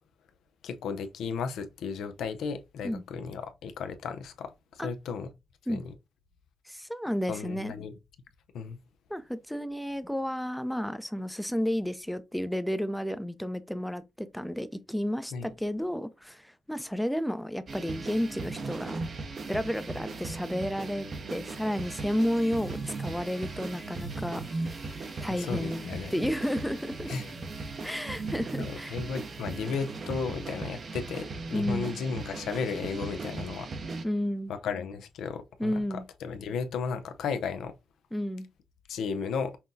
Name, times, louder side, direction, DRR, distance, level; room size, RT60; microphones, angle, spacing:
voice 1, 0.6-5.3 5.7-5.9 7.3-7.9 8.5-8.8 15.3-15.5 25.3-26.1 27.1-27.3 27.8-27.9 28.6-33.7 34.5-35.7 36.2-37.7 38.9-39.6, left 5 dB, 80° left, 0.5 m, -34 dB
voice 2, 6.7-7.8 9.1-19.0 19.5-24.4 25.2-25.8 26.1-27.1 27.8-29.0 31.5-31.9 34.0-34.5 35.6-36.0 38.1-38.5, equal, 5° left, 0.5 m, -32 dB
sound 1, 17.7-34.0, right 3 dB, 55° right, 0.7 m, -38 dB
sound 2, 21.7-31.3, left 2 dB, 25° left, 0.9 m, -57 dB
5.6 x 2.2 x 2.6 m
cardioid pair, 65°, 0 cm